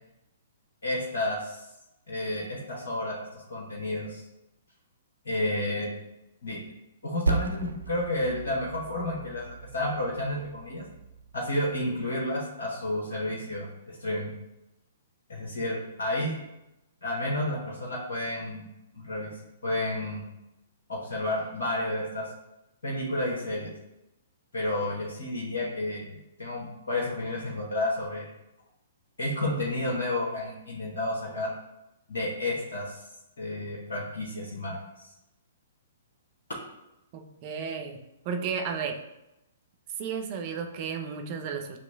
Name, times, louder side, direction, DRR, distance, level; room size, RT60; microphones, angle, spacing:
voice 1, 0.8-1.7 2.1-4.2 5.2-5.9 6.4-6.6 7.0-10.8 11.3-14.3 15.3-16.4 17.0-18.6 18.9-19.3 19.6-20.2 20.9-22.3 22.8-23.7 24.5-28.3 29.2-31.5 32.1-33.0 33.4-35.1, left 1 dB, 70° left, -5 dB, 1.1 m, -31 dB
Percussion, 7.3-12.1, right 3 dB, 85° right, 0.3 m, -35 dB
voice 2, 37.1-38.0 38.2-39.0 40.0-41.8, right 6 dB, 40° right, 4 dB, 0.6 m, -33 dB
7.6 x 3.0 x 2.3 m, 0.92 s
figure-of-eight pair, 120°, 0 cm